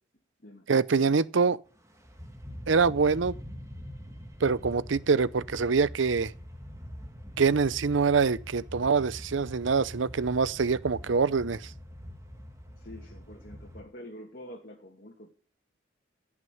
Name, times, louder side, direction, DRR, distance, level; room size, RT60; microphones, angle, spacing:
voice 1, 0.7-1.6 2.7-3.4 4.4-6.3 7.4-11.6, right 5 dB, 70° right, 0.6 m, -25 dB
sound 1, 1.7-13.8, equal, 15° right, 1.8 m, -44 dB
voice 2, 12.8-15.3, left 1 dB, 50° left, 2.4 m, -46 dB
16.5 x 6.1 x 9.3 m
head